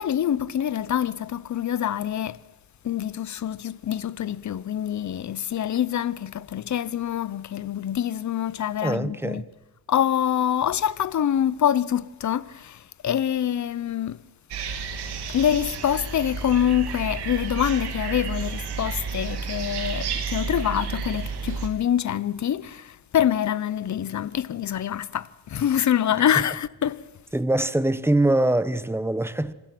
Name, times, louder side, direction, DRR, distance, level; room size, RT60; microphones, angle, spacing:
voice 1, 0.0-2.4 2.8-9.4 9.9-14.2 15.3-27.0, left 10 dB, 45° left, 0.9 m, -25 dB
voice 2, 8.8-9.4 27.3-29.5, right 1 dB, 5° right, 1.0 m, -23 dB
sound 1, 14.5-21.7, right 5 dB, 80° right, 3.0 m, -31 dB
26.5 x 21.0 x 6.1 m
cardioid pair, 95°, 39 cm